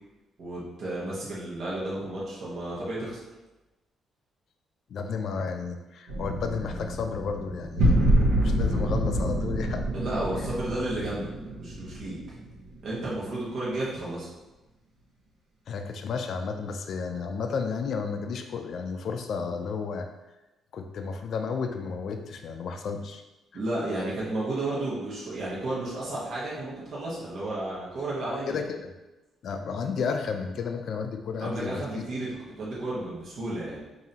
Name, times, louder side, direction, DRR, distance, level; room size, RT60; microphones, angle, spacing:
voice 1, 0.4-3.2 9.9-11.3 11.5-12.2 12.8-14.3 23.5-28.6 31.4-32.3 32.6-33.8, right 2 dB, 60° right, -7 dB, 1.1 m, -32 dB
voice 2, 4.9-9.8 15.7-20.1 20.7-23.2 28.3-28.9 29.4-32.0, left 5 dB, 65° left, 5 dB, 0.4 m, -32 dB
sound 1, 6.1-12.9, right 1 dB, 85° right, 0.9 m, -27 dB
4.9 x 2.7 x 2.8 m, 1.0 s
cardioid pair, 90°, 0 cm